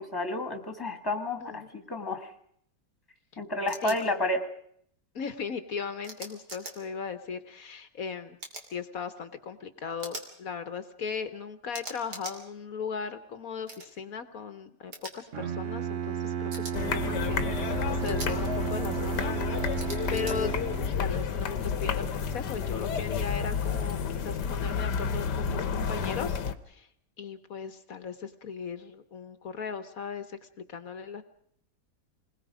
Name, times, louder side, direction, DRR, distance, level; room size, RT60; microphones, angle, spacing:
voice 1, 0.0-2.3 3.4-4.5, left 1 dB, 15° left, 7 dB, 1.9 m, -31 dB
sound 1, 3.7-4.0 6.0-6.7 8.4-8.7 10.0-10.3 11.7-12.4 13.7-13.9 14.9-15.1 16.5-16.7 18.0-18.3 19.8-20.4, right 2 dB, 75° right, 3.5 m, -41 dB
voice 2, 3.8-4.1 5.1-8.4 8.7-20.6 21.0-26.9 27.2-31.2, left 6 dB, 60° left, 10 dB, 1.4 m, -38 dB
Bowed string instrument, 15.3-21.2, right 9 dB, 50° right, 1.2 m, -33 dB
sound 2, 16.7-26.5, left 6 dB, 75° left, 1.6 m, -31 dB
28.0 x 20.5 x 5.0 m, 0.66 s
omnidirectional pair, 1.8 m